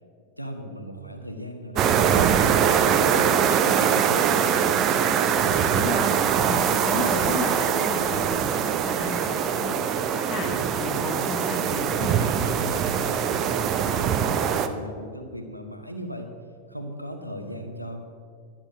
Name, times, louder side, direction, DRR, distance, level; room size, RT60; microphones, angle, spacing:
voice 1, 0.4-4.7 5.2-5.7 12.6-16.3 16.7-18.0, equal, 90° right, 4 dB, 1.3 m, -37 dB
sound 1, 1.8-14.7, right 8 dB, 35° right, 0.8 m, -23 dB
sound 2, 4.0-5.2 6.9-8.2 8.9-9.3 9.5-9.9 11.8-13.3 13.9-14.6, left 2 dB, 75° left, 1.9 m, -45 dB
voice 2, 5.7-6.1 6.5-12.2, left 3 dB, 25° left, 3 dB, 1.8 m, -33 dB
11.5 x 8.9 x 6.4 m, 2.2 s
figure-of-eight pair, 90°, 0 cm